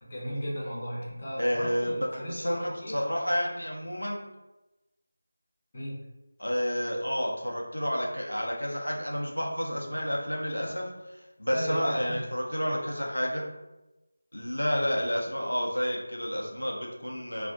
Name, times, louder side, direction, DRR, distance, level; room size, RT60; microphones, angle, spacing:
voice 1, 0.0-3.0 5.7-6.0 11.5-12.3, equal, 30° left, -6 dB, 0.7 m, -35 dB
voice 2, 1.4-4.2 6.4-13.5 14.3-17.5, equal, 85° left, -1 dB, 0.6 m, -30 dB
2.4 x 2.0 x 2.6 m, 1.0 s
figure-of-eight pair, 165°, 0 cm